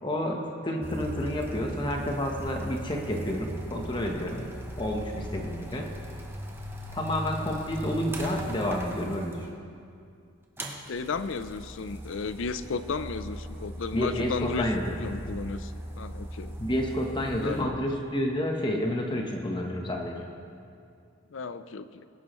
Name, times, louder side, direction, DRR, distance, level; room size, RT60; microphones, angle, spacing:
voice 1, 0.0-4.5 4.8-5.9 6.9-9.5 13.9-15.0 16.6-20.3, left 1 dB, 25° left, 1 dB, 1.0 m, -30 dB
sound 1, 0.8-9.5 10.6-17.6, right 1 dB, 10° right, 0.9 m, -39 dB
voice 2, 10.9-14.7 15.0-16.5 17.4-17.8 21.3-22.1, left 4 dB, 70° left, 12 dB, 0.5 m, -34 dB
20.5 x 10.5 x 3.1 m, 2.4 s
head